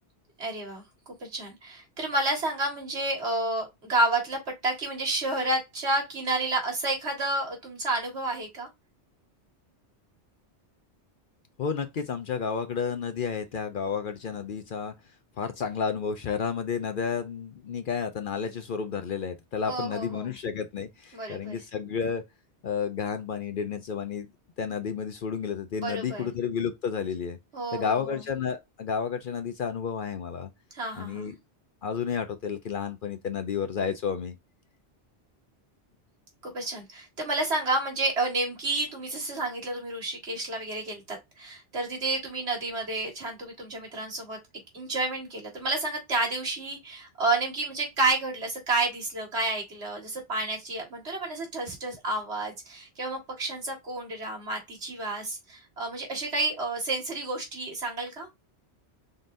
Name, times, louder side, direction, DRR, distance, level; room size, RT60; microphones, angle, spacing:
voice 1, 0.4-0.8 1.2-8.7 19.7-20.3 21.1-21.6 25.7-26.3 27.5-28.2 30.7-31.3 36.4-44.4 44.7-58.3, right 2 dB, 65° right, 2.0 m, -30 dB
voice 2, 11.6-14.9 15.4-22.2 22.6-24.3 24.6-27.4 27.7-30.5 31.0-31.4 31.8-34.4, left 6 dB, 55° left, 0.7 m, -31 dB
3.9 x 3.8 x 2.5 m
omnidirectional pair, 1.2 m